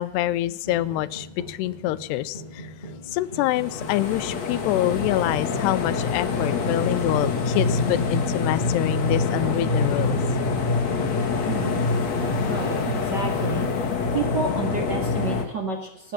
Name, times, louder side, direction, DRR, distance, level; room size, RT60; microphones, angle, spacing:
voice 1, 0.0-2.7 3.1-10.2, left 15 dB, 90° left, 16 dB, 2.8 m, -26 dB
sound 1, 0.6-12.8, equal, 15° left, 3.7 m, -41 dB
sound 2, 3.4-15.4, left 4 dB, 50° left, 2.8 m, -25 dB
voice 2, 11.4-11.9 12.5-13.7 14.1-16.1, right 4 dB, 40° right, 2 dB, 1.7 m, -30 dB
18.5 x 9.1 x 7.3 m, 0.81 s
omnidirectional pair, 4.7 m